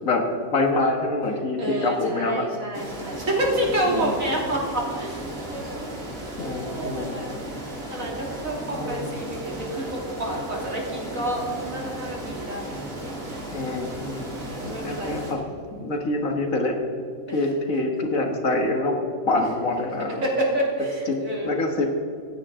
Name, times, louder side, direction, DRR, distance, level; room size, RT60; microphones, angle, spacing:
voice 1, 0.0-2.5 3.9-4.1 6.4-7.1 8.7-9.0 13.5-14.3 14.6-15.4 15.7-16.8 17.3-20.2 21.1-21.9, left 2 dB, 90° left, 3 dB, 2.1 m, -26 dB
voice 2, 1.6-5.9 6.1-6.3 6.6-7.4 7.9-12.9 14.5-15.6 17.3-17.5 19.8-21.5, right 1 dB, 85° right, -2 dB, 3.4 m, -29 dB
sound 1, 2.7-15.3, right 1 dB, 45° right, 2.7 m, -35 dB
25.0 x 9.5 x 3.8 m, 2.6 s
omnidirectional pair, 1.4 m